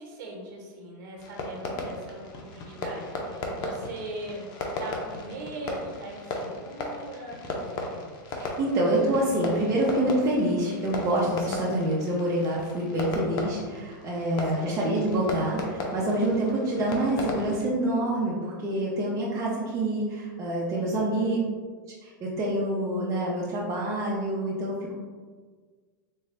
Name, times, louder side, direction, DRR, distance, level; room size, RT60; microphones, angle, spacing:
voice 1, 0.0-4.4 4.8-7.4 11.7-11.9 14.4-14.8 20.7-21.2, right 2 dB, 55° right, -1 dB, 1.1 m, -40 dB
Fireworks, 1.2-17.7, left 2 dB, 40° left, 0.6 m, -36 dB
voice 2, 8.3-21.4 22.0-25.0, right 1 dB, 30° right, -5 dB, 0.7 m, -27 dB
3.7 x 2.2 x 3.3 m, 1.5 s
hypercardioid pair, 120°, 11 cm